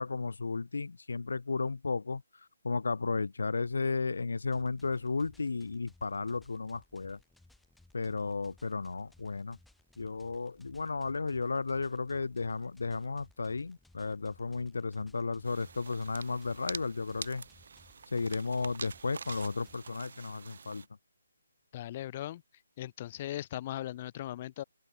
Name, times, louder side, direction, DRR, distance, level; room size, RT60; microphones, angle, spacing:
voice 1, 0.0-2.2 2.6-7.2 7.9-9.6 10.0-17.4 18.1-20.9, left 4 dB, 75° left, 1.1 m, -34 dB
sound 1, 4.5-19.8, left 2 dB, ahead, 2.7 m, -63 dB
sound 2, 15.4-20.9, right 5 dB, 60° right, 3.8 m, -46 dB
voice 2, 21.7-22.4 22.8-24.6, left 13 dB, 30° left, 1.3 m, -38 dB
open air
hypercardioid pair, 160°, 0 cm